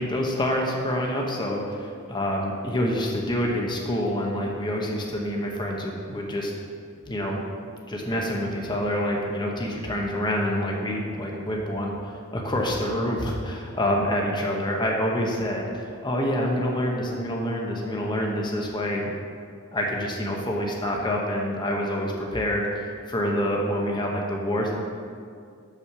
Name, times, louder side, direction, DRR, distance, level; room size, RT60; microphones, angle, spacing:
voice 1, 0.0-6.5 7.0-7.4 7.9-19.1 19.7-24.8, equal, 20° left, -1 dB, 0.9 m, -27 dB
6.3 x 5.8 x 6.8 m, 2.3 s
head